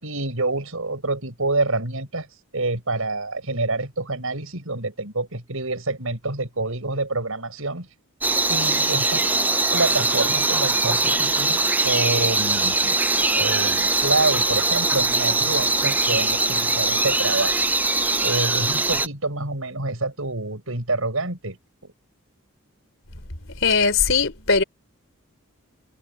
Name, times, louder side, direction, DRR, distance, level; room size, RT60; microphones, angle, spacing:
voice 1, 0.0-2.3 2.5-7.9 8.5-9.3 9.7-13.0 13.3-17.6 18.2-21.6, right 2 dB, 75° right, 5.6 m, -27 dB
sound 1, 8.2-19.1, right 2 dB, 10° right, 0.4 m, -21 dB
voice 2, 23.6-24.6, left 5 dB, 65° left, 3.6 m, -19 dB
head